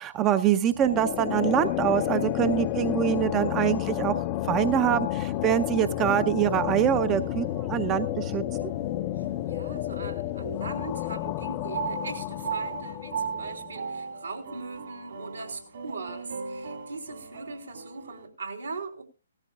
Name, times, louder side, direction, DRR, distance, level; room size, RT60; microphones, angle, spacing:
voice 1, 0.0-4.1 4.4-8.7, right 10 dB, 20° right, 11 dB, 0.6 m, -25 dB
sound 1, 0.7-13.9, left 14 dB, 30° left, 0.6 m, -31 dB
sound 2, 7.1-10.6 11.0-18.3, right 6 dB, 60° right, 2.4 m, -39 dB
voice 2, 9.2-19.0, right 3 dB, 80° right, 4 dB, 3.4 m, -40 dB
17.5 x 14.0 x 2.4 m, 0.32 s
figure-of-eight pair, 130°, 0 cm